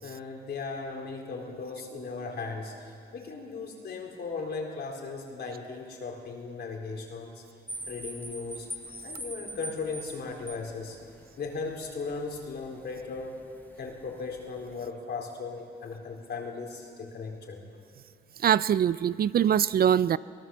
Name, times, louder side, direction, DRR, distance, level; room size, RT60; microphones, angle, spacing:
voice 1, 0.0-7.4 7.9-8.7 9.0-11.0 11.4-13.4 13.8-17.6, left 4 dB, 55° left, 1 dB, 4.3 m, -37 dB
sound 1, 7.7-14.9, right 1 dB, 10° left, 1.3 m, -44 dB
voice 2, 18.4-20.2, right 9 dB, 50° right, 17 dB, 0.5 m, -23 dB
24.0 x 18.5 x 7.2 m, 2.3 s
cardioid pair, 90°, 20 cm